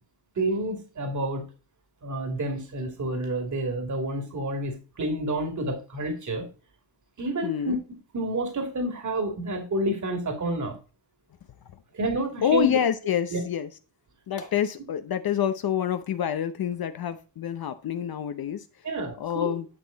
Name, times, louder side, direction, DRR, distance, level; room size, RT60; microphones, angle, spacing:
voice 1, 0.4-1.4 2.0-6.5 7.2-7.8 8.1-10.8 11.9-12.8 13.3-13.4 18.8-19.5, right 1 dB, 40° right, 5 dB, 2.8 m, -29 dB
voice 2, 7.4-7.8 12.4-13.7 14.3-18.9 19.2-19.7, left 9 dB, 50° left, 10 dB, 0.8 m, -27 dB
11.5 x 6.0 x 4.0 m, 0.33 s
cardioid pair, 90°, 46 cm